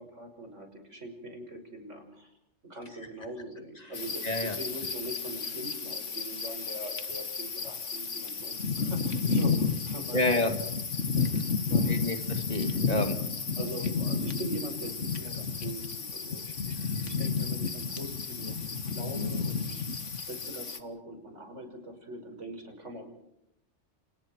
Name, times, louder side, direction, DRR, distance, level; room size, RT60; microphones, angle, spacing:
voice 1, 0.0-2.3 2.7-10.5 11.6-12.2 13.6-16.8 17.0-19.9 20.2-23.1, right 1 dB, 85° right, 4 dB, 6.2 m, -42 dB
sound 1, 3.9-20.8, left 5 dB, 85° left, 2.1 m, -32 dB
voice 2, 4.2-4.6 10.1-10.5 11.8-13.2, left 2 dB, 35° left, 6 dB, 2.6 m, -29 dB
29.0 x 28.5 x 4.6 m, 0.80 s
omnidirectional pair, 1.2 m